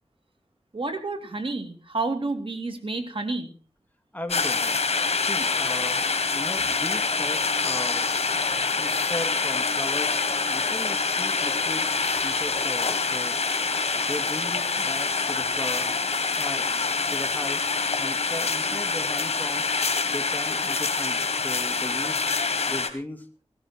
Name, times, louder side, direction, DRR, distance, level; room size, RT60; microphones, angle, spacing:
voice 1, 0.7-3.5, right 3 dB, 55° right, 6 dB, 2.8 m, -30 dB
voice 2, 4.1-4.8 5.2-6.0 6.3-8.1 8.8-10.1 10.5-11.9 12.2-13.4 13.9-17.6 18.0-19.6 20.1-22.2 22.7-23.3, left 1 dB, 15° left, 6 dB, 2.3 m, -37 dB
sound 1, 4.3-22.9, left 4 dB, 80° left, 1.9 m, -26 dB
17.0 x 13.5 x 4.5 m, 0.36 s
wide cardioid pair, 75°, 11 cm